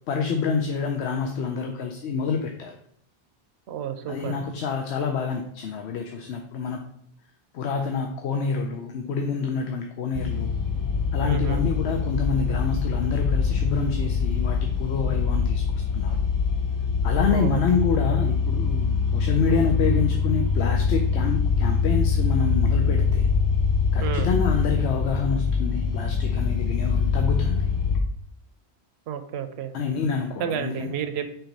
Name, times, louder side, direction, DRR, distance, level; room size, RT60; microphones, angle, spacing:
voice 1, 0.1-2.8 4.1-6.8 7.5-10.5 11.1-15.6 15.9-16.2 17.0-23.3 23.9-27.7 29.7-31.0, left 5 dB, 80° left, 3 dB, 0.9 m, -27 dB
voice 2, 3.7-4.3 11.2-11.6 17.3-17.6 24.0-24.3 29.1-29.7 30.4-31.2, right 9 dB, 80° right, 8 dB, 0.8 m, -31 dB
sound 1, 10.1-28.0, left 5 dB, 30° left, 0.4 m, -24 dB
4.5 x 4.0 x 5.2 m, 0.68 s
omnidirectional pair, 1.1 m